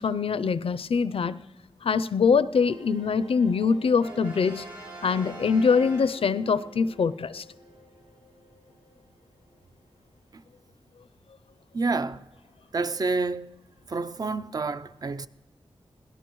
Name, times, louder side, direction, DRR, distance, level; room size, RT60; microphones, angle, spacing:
voice 1, 0.0-1.4 1.8-4.7 5.0-7.4, left 5 dB, 65° left, 0.5 m, -23 dB
sound 1, 2.5-10.0 10.3-10.4 10.6-10.7, right 1 dB, 85° right, 5.9 m, -49 dB
Brass instrument, 4.0-6.7, right 2 dB, 65° right, 6.8 m, -44 dB
voice 2, 11.7-12.3 12.7-13.5 13.9-15.3, right 3 dB, 40° right, 0.5 m, -29 dB
22.0 x 18.0 x 3.1 m
wide cardioid pair, 95°, 10 cm